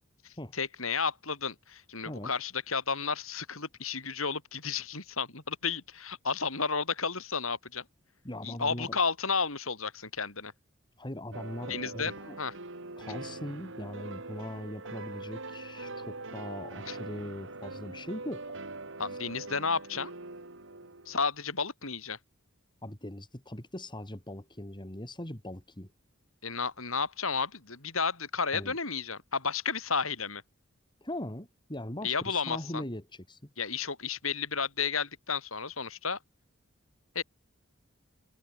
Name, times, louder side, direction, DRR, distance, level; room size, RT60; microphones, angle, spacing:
voice 1, 0.2-7.8 8.4-10.5 11.7-12.5 16.9-17.0 19.0-20.1 21.1-22.2 26.4-30.4 32.0-32.8 33.6-36.2 37.1-37.2, left 5 dB, 85° left, 7.7 m, -32 dB
voice 2, 8.2-9.0 11.0-12.4 13.0-18.5 22.8-25.9 28.5-28.8 31.0-33.5, left 1 dB, 25° left, 3.6 m, -40 dB
sound 1, 11.3-21.2, right 2 dB, 65° right, 4.0 m, -42 dB
head